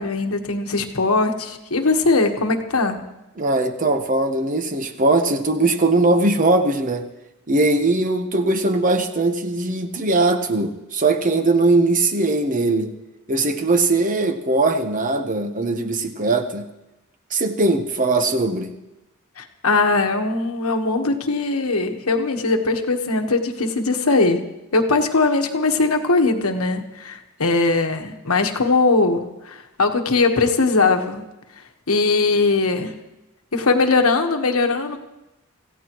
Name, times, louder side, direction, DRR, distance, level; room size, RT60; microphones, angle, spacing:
voice 1, 0.0-3.0 19.4-24.4 24.7-31.2 31.9-32.9 33.5-35.0, left 3 dB, 85° left, 5 dB, 1.3 m, -20 dB
voice 2, 3.4-7.1 7.5-12.9 13.3-16.7 17.3-18.7, right 2 dB, 40° right, 7 dB, 1.0 m, -20 dB
26.0 x 15.5 x 3.1 m, 0.95 s
head